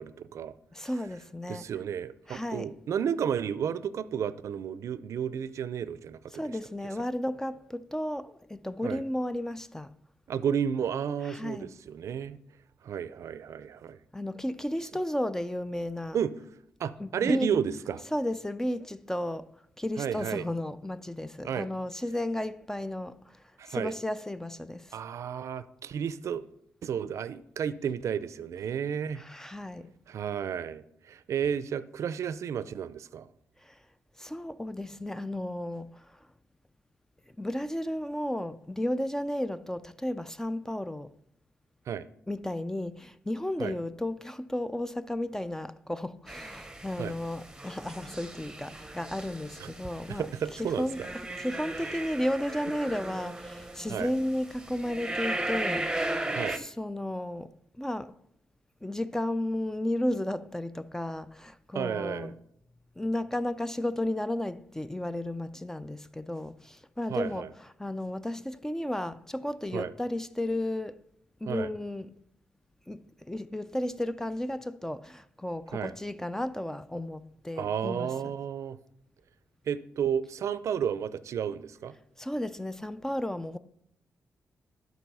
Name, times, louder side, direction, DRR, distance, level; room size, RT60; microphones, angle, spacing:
voice 1, 0.0-0.5 1.5-6.4 8.8-9.0 10.3-12.4 12.8-14.0 16.1-16.3 16.8-18.0 20.0-20.5 21.4-21.7 23.6-23.9 24.9-26.4 26.8-29.2 30.1-33.3 41.9-42.1 43.6-43.7 47.0-47.1 49.6-49.7 50.1-51.1 53.9-54.1 56.3-56.6 61.7-62.3 67.1-67.5 69.7-69.9 71.5-71.7 75.7-75.9 77.6-78.8 79.7-81.9, right 8 dB, 65° right, 0.5 m, -32 dB
voice 2, 0.7-1.6 2.3-2.7 6.3-10.0 11.2-11.7 14.1-16.2 17.0-17.5 18.1-25.0 29.2-29.9 33.6-33.8 34.2-36.2 37.4-41.2 42.3-51.0 51.4-56.2 56.5-58.1 58.8-62.4 63.0-67.5 67.8-71.0 71.4-72.1 72.9-78.4 82.2-83.6, left 1 dB, 10° left, 0.4 m, -33 dB
sound 1, 46.3-56.6, right 1 dB, 10° right, 0.8 m, -37 dB
12.0 x 4.1 x 5.5 m
cardioid pair, 90°, 5 cm